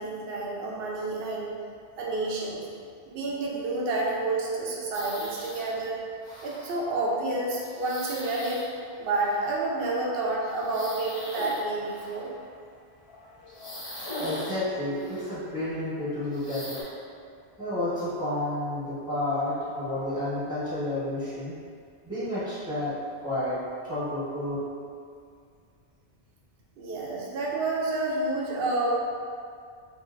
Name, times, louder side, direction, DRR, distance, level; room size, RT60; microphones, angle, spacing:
voice 1, 0.0-1.6 2.0-2.6 3.1-6.0 6.4-8.6 9.0-12.3 17.1-17.2 26.8-29.0, right 2 dB, 65° right, -3 dB, 0.8 m, -29 dB
sound 1, 4.9-5.7 6.2-6.8 7.6-9.8 10.4-12.4 13.1-15.5 16.2-16.8, left 1 dB, 35° left, 0.5 m, -40 dB
voice 2, 13.9-16.8 17.6-21.5 22.0-22.9 23.2-24.6, left 1 dB, 5° right, -12 dB, 1.0 m, -31 dB
3.0 x 2.7 x 2.5 m, 2.2 s
omnidirectional pair, 1.1 m